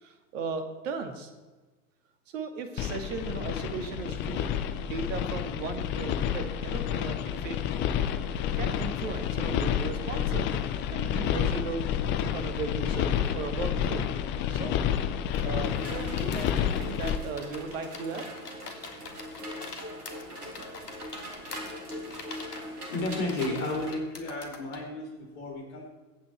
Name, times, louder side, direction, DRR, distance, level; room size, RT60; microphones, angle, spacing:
voice 1, 0.0-1.3 2.3-4.5 4.8-7.7 8.2-10.6 10.9-11.9 12.2-14.1 14.5-14.7 15.4-18.2, right 4 dB, 50° right, 7 dB, 2.2 m, -37 dB
sound 1, 2.8-17.2, left 9 dB, 25° left, 0.7 m, -29 dB
sound 2, 15.3-24.9, left 4 dB, 70° left, 2.0 m, -45 dB
sound 3, 15.7-23.9, equal, 70° right, 3.3 m, -41 dB
voice 2, 22.9-25.9, left 2 dB, 50° left, 1 dB, 4.3 m, -33 dB
22.0 x 8.7 x 4.5 m, 1.2 s
figure-of-eight pair, 95°, 48 cm